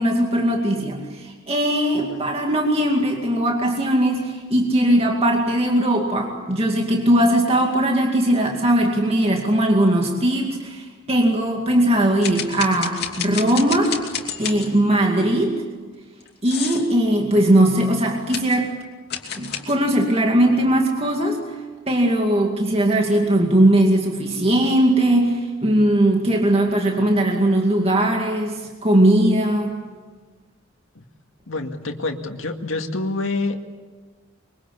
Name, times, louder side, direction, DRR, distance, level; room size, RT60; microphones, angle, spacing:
voice 1, 0.0-14.0 14.4-15.6 16.4-18.7 19.4-21.4 21.9-29.8, right 1 dB, 30° right, 1 dB, 2.3 m, -19 dB
sound 1, 12.2-14.8 16.2-16.9 18.3-18.6 19.1-19.8, left 8 dB, 50° left, 2.8 m, -30 dB
voice 2, 31.5-33.6, left 2 dB, 75° left, 4 dB, 2.1 m, -27 dB
24.5 x 23.5 x 8.4 m, 1.4 s
head